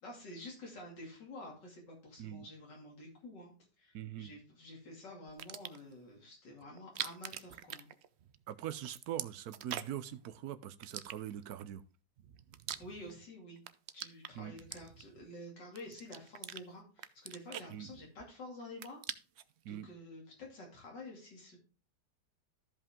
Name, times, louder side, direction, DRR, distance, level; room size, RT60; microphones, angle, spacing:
voice 1, 0.0-7.9 12.8-13.6 13.9-19.0 19.7-21.6, left 1 dB, 90° left, -1 dB, 3.3 m, -49 dB
voice 2, 3.9-4.3 8.5-11.8 14.3-14.6 17.7-17.9 19.6-19.9, right 11 dB, 70° right, 13 dB, 1.1 m, -42 dB
sound 1, 5.3-5.9 6.8-8.4 8.7-10.1 10.8-11.6 12.2-13.3 13.6-15.3 15.8-16.6 17.0-18.3 18.6-19.5, right 10 dB, 85° right, 0.5 m, -44 dB
14.0 x 5.3 x 3.6 m, 0.35 s
omnidirectional pair, 1.8 m